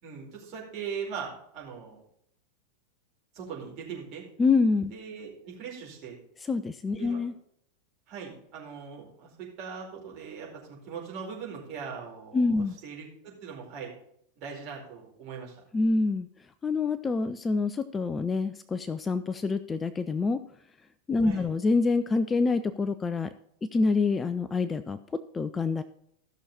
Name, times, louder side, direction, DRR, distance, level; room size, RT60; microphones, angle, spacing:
voice 1, 0.0-2.0 3.3-4.2 4.9-6.2 7.0-7.2 8.1-13.9 14.4-15.6 21.2-21.5, right 6 dB, 40° right, -3 dB, 4.5 m, -40 dB
voice 2, 4.4-4.9 6.5-7.3 12.3-12.8 15.7-16.3 16.6-20.4 21.1-23.3 23.7-25.0 25.3-25.8, left 4 dB, 15° left, 11 dB, 0.5 m, -26 dB
14.5 x 6.4 x 4.2 m, 0.72 s
figure-of-eight pair, 90°, 0 cm